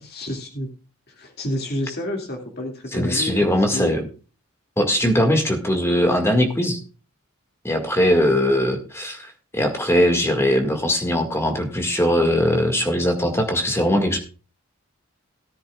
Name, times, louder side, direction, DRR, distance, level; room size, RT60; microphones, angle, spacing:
voice 1, 0.1-0.7 1.1-4.0, left 1 dB, 45° left, 2 dB, 2.3 m, -30 dB
voice 2, 2.9-4.0 4.8-6.8 7.6-14.2, equal, 10° left, 4 dB, 1.9 m, -20 dB
17.5 x 9.9 x 2.4 m, 0.35 s
head